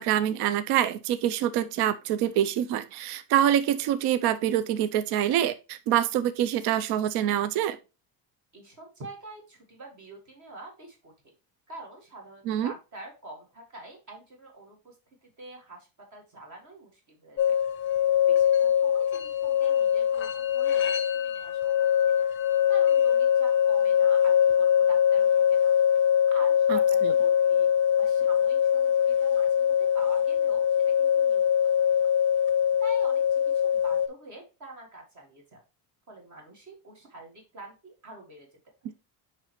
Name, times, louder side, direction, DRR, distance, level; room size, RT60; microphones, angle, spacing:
voice 1, 0.0-7.8 12.5-12.7 26.7-27.1 38.8-38.9, right 11 dB, 60° right, 0.5 m, -26 dB
voice 2, 8.5-11.3 11.7-15.0 15.2-17.6 18.3-22.1 22.7-25.7 26.3-27.7 28.0-32.1 32.8-33.4 33.7-35.6 36.1-38.5, right 2 dB, 40° right, 1.8 m, -46 dB
sound 1, 17.4-34.1, left 9 dB, 30° left, 0.6 m, -23 dB
9.7 x 3.3 x 2.9 m
cardioid pair, 135°, 44 cm